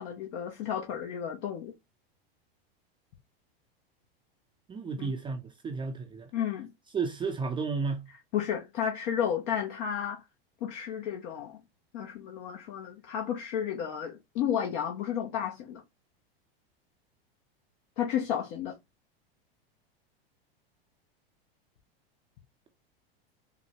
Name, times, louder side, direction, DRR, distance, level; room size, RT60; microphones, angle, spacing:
voice 1, 0.0-1.7 5.0-5.1 6.3-6.7 8.3-10.2 10.6-11.6 11.9-15.8 18.0-18.7, left 9 dB, 55° left, 0.8 m, -32 dB
voice 2, 4.7-6.3 6.9-8.0, right 4 dB, 15° right, 0.5 m, -32 dB
4.0 x 2.1 x 2.8 m
hypercardioid pair, 115°, 30 cm